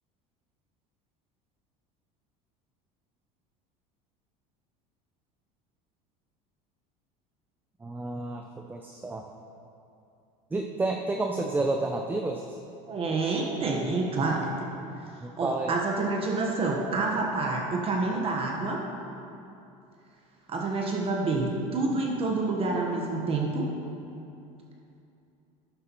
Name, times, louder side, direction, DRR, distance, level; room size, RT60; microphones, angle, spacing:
voice 1, 7.8-9.2 10.5-12.6 15.2-15.8, right 2 dB, 10° right, 3 dB, 0.4 m, -30 dB
voice 2, 12.9-14.7 15.4-18.8 20.5-23.6, right 3 dB, 35° right, 0 dB, 1.1 m, -28 dB
11.5 x 8.3 x 3.0 m, 2.7 s
supercardioid pair, 120°, 17 cm